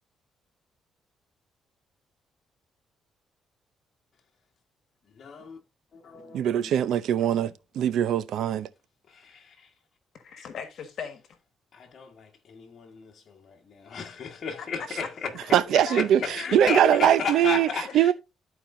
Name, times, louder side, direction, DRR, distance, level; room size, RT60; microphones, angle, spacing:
voice 1, 5.2-5.6 5.9-6.7 9.1-9.7 11.7-15.1 16.0-18.1, left 5 dB, 50° left, 1.4 m, -34 dB
voice 2, 6.3-8.7 15.5-16.2 16.5-18.1, right 10 dB, 75° right, 0.6 m, -22 dB
voice 3, 10.1-11.4 14.6-15.1 15.4-17.5 17.8-17.9, left 7 dB, 65° left, 1.4 m, -39 dB
13.0 x 4.5 x 2.6 m
cardioid pair, 90°, 0 cm